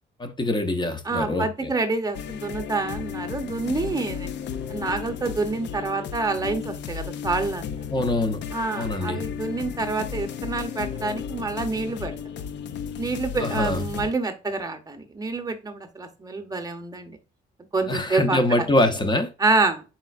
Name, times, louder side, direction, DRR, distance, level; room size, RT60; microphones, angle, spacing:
voice 1, 0.2-1.7 7.9-8.4 8.7-9.2 13.4-13.8 17.9-19.3, left 1 dB, 20° left, 0.7 m, -24 dB
voice 2, 1.0-4.3 4.7-7.6 8.5-12.2 13.0-17.2 17.7-18.7 19.4-19.8, right 3 dB, 20° right, 0.8 m, -27 dB
sound 1, 2.1-14.1, left 7 dB, 65° left, 0.4 m, -34 dB
4.3 x 3.6 x 2.4 m
cardioid pair, 90°, 20 cm